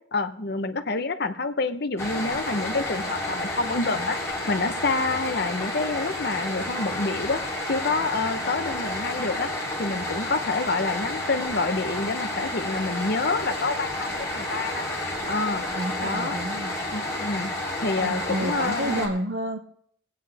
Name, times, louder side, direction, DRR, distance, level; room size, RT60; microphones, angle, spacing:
voice 1, 0.1-4.2 4.5-7.4 7.7-9.5 9.8-14.9 15.3-15.6 16.0-16.4 16.9-17.5 17.8-19.1, left 3 dB, 55° left, 9 dB, 0.9 m, -27 dB
sound 1, 2.0-19.1, left 1 dB, 15° left, 3.2 m, -30 dB
voice 2, 15.7-16.9 18.0-19.6, right 1 dB, 65° right, 5 dB, 0.9 m, -30 dB
24.0 x 9.1 x 3.5 m, 0.66 s
head